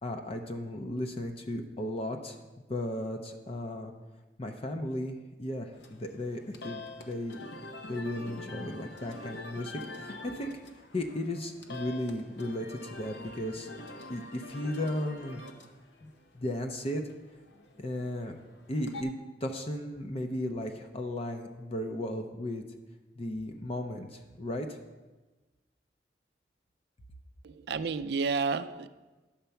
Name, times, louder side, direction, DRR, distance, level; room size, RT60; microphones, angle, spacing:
voice 1, 0.0-2.4 2.7-3.9 4.4-7.4 7.9-10.5 10.9-13.7 14.1-15.4 16.0-17.0 17.8-18.3 18.7-19.1 19.4-22.6 23.2-24.8, left 1 dB, 35° left, 0.6 m, -35 dB
sound 1, 5.7-19.0, left 2 dB, 75° left, 0.9 m, -45 dB
voice 2, 27.4-28.9, right 4 dB, 65° right, 0.4 m, -31 dB
10.5 x 4.4 x 6.9 m
head